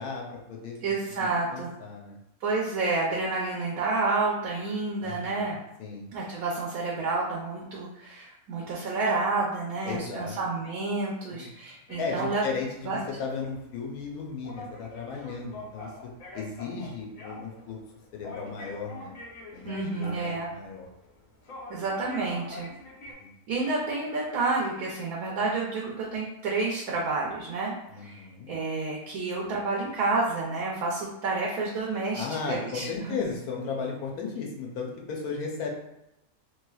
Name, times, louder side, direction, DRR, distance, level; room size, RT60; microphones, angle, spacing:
voice 1, 0.0-0.8 1.2-2.2 5.0-5.5 5.8-6.1 9.8-10.4 11.3-11.5 12.0-15.9 16.3-17.8 18.1-19.1 19.5-20.9 23.2-23.3 27.9-28.5 32.1-35.7, left 5 dB, 85° left, 0 dB, 1.2 m, -35 dB
voice 2, 0.8-1.7 2.4-5.6 6.1-12.4 12.8-13.0 19.6-20.5 21.7-22.7 23.5-33.2, right 3 dB, 75° right, -3 dB, 1.1 m, -29 dB
sound 1, 11.9-23.1, left 2 dB, 65° left, 1.1 m, -45 dB
3.2 x 3.1 x 2.3 m, 0.87 s
omnidirectional pair, 1.6 m